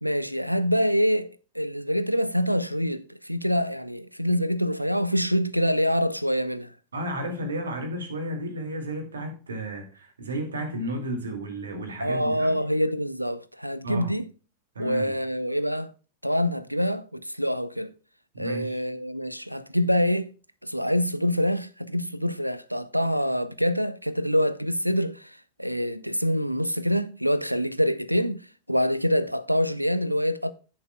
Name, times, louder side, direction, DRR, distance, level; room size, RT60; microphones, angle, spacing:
voice 1, 0.0-1.3 1.6-6.7 12.0-14.2 14.8-15.9 16.2-17.9 18.4-20.3 20.6-25.3 25.6-28.4 28.7-30.5, equal, 90° right, 0.5 m, -25 dB
voice 2, 6.9-12.6 13.8-14.1 14.7-15.1 18.3-18.8, right 1 dB, 70° right, 2.3 m, -33 dB
14.0 x 6.9 x 2.3 m
figure-of-eight pair, 90°, 0 cm